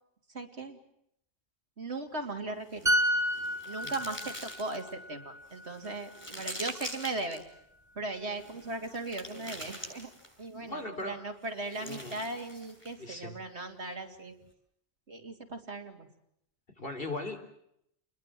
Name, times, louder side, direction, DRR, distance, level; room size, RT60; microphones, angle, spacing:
voice 1, 0.3-0.8 1.8-2.9 3.7-7.4 8.0-10.1 10.4-14.4 15.1-16.1, right 2 dB, 75° right, 5 dB, 3.2 m, -38 dB
sound 1, 2.6-4.9 5.5-7.4 8.3-10.5 11.4-13.0, equal, 25° left, 7.7 m, -45 dB
sound 2, 2.9-6.5 6.8-7.0, equal, 15° right, 2.2 m, -31 dB
voice 2, 10.6-11.2 11.8-12.2 13.0-13.4 16.8-17.4, left 2 dB, 55° left, 6 dB, 4.4 m, -38 dB
29.5 x 21.0 x 7.7 m, 0.76 s
omnidirectional pair, 1.1 m